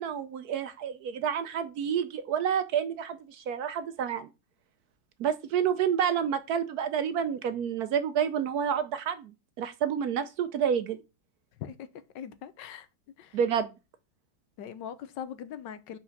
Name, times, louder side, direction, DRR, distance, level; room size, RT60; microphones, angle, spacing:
voice 1, 0.0-4.3 5.2-11.0 13.3-13.7, right 8 dB, 70° right, 1.0 m, -29 dB
voice 2, 12.1-12.9 13.2-13.4 14.6-16.0, left 9 dB, 75° left, 1.4 m, -41 dB
5.9 x 4.7 x 5.7 m
omnidirectional pair, 2.0 m